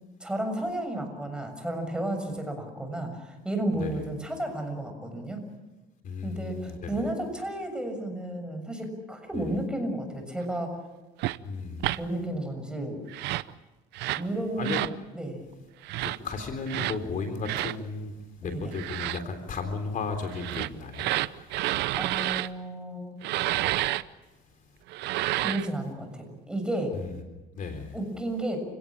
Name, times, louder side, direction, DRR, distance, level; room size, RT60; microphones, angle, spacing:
voice 1, 0.2-5.4 6.2-10.8 12.0-13.0 14.1-14.8 15.1-15.4 18.4-18.8 21.9-23.2 25.4-26.9 27.9-28.6, right 1 dB, 5° right, 5 dB, 6.8 m, -32 dB
voice 2, 6.0-7.0 9.4-9.5 11.4-11.9 14.6-14.8 16.0-18.1 18.4-21.1 26.9-27.1 27.6-27.9, left 4 dB, 50° left, 6 dB, 3.6 m, -34 dB
sound 1, 11.2-11.4 11.8-12.0 13.1-13.5 13.9-14.3 14.6-14.9 15.8-16.2 16.7-17.0 17.4-17.8 18.7-19.2 20.3-22.5 23.2-24.0 24.9-25.7, right 16 dB, 85° right, 0.8 m, -29 dB
29.5 x 17.5 x 8.8 m, 1.1 s
cardioid pair, 110°, 17 cm